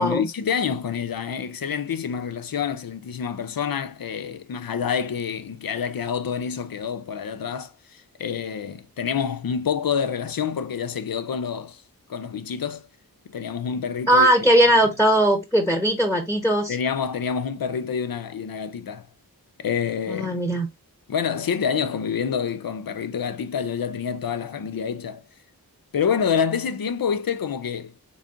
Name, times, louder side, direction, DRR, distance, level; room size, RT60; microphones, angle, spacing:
voice 1, 0.0-11.8 12.1-12.8 13.3-14.5 14.8-14.9 16.7-19.1 19.6-20.4 21.1-25.2 25.9-28.0, left 7 dB, 65° left, 0.6 m, -27 dB
voice 2, 14.1-16.8 20.1-20.7, right 1 dB, 5° left, 1.0 m, -19 dB
4.1 x 3.6 x 2.5 m
wide cardioid pair, 45°, 38 cm